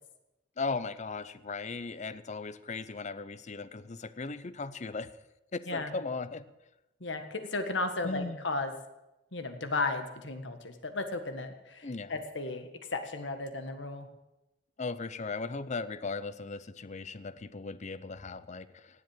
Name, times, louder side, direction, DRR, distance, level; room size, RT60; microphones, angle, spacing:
voice 1, 0.6-5.1 5.5-6.4 8.0-8.4 11.8-12.1 14.8-19.0, left 4 dB, 40° left, 15 dB, 0.7 m, -37 dB
voice 2, 7.0-8.7 9.3-14.1, left 3 dB, 75° left, 7 dB, 1.7 m, -35 dB
18.0 x 7.8 x 7.8 m, 0.97 s
head